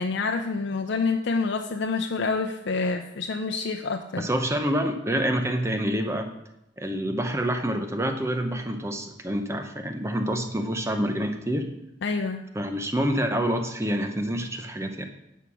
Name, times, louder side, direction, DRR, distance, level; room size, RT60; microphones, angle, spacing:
voice 1, 0.0-4.3 12.0-12.4, left 4 dB, 85° left, 4 dB, 0.5 m, -27 dB
voice 2, 4.2-6.3 6.8-11.7 12.5-15.0, equal, 15° right, 6 dB, 0.8 m, -27 dB
10.5 x 4.7 x 6.1 m, 0.88 s
head